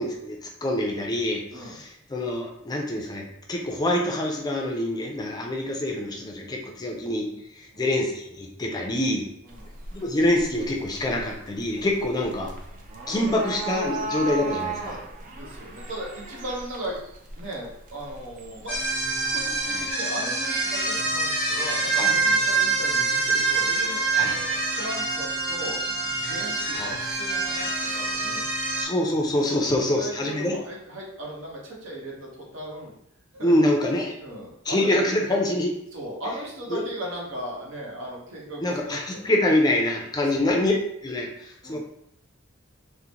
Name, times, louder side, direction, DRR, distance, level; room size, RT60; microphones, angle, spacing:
voice 1, 0.0-9.3 9.9-12.5 13.1-15.0 19.7-19.8 22.0-22.1 24.1-24.4 26.8-26.9 28.8-30.6 33.4-34.2 34.7-35.8 36.7-36.8 38.6-40.8 41.0-41.8, left 1 dB, 20° left, 1 dB, 0.4 m, -25 dB
sound 1, 9.5-19.9, right 3 dB, 45° right, 0.5 m, -37 dB
voice 2, 15.3-17.0 17.4-18.8 19.3-25.8 26.3-28.4 29.6-32.9 33.3-33.5 34.2-34.9 35.9-39.3 40.3-40.6 41.6-41.8, right 1 dB, 70° right, -3 dB, 1.0 m, -37 dB
sound 2, 18.7-28.8, right 3 dB, 10° right, 0.9 m, -25 dB
3.7 x 2.0 x 2.9 m, 0.75 s
head